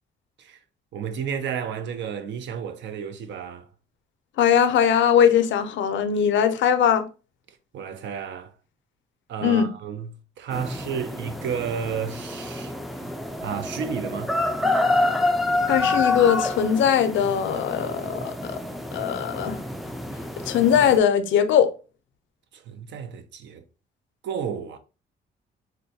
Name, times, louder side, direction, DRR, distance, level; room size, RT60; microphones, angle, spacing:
voice 1, 0.9-3.7 7.7-8.5 9.3-13.1 13.4-14.3 22.5-23.6 24.2-24.8, right 7 dB, 65° right, 0.5 m, -32 dB
voice 2, 4.4-7.0 9.4-9.7 15.7-18.6 18.9-19.6 20.5-21.7, left 8 dB, 70° left, 0.5 m, -20 dB
sound 1, 10.5-21.0, left 2 dB, ahead, 0.3 m, -27 dB
3.7 x 2.2 x 2.7 m
cardioid pair, 90°, 20 cm